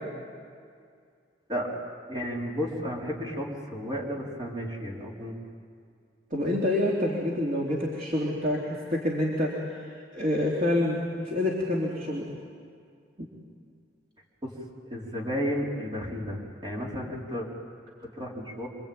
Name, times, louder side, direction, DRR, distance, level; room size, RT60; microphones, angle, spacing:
voice 1, 2.1-5.4 14.4-14.5 14.8-17.5 18.2-18.7, equal, 25° right, -3 dB, 4.5 m, -33 dB
voice 2, 6.3-9.5 10.1-12.2 13.2-13.3, left 1 dB, 50° right, -4 dB, 3.2 m, -27 dB
28.0 x 24.0 x 9.0 m, 2.2 s
head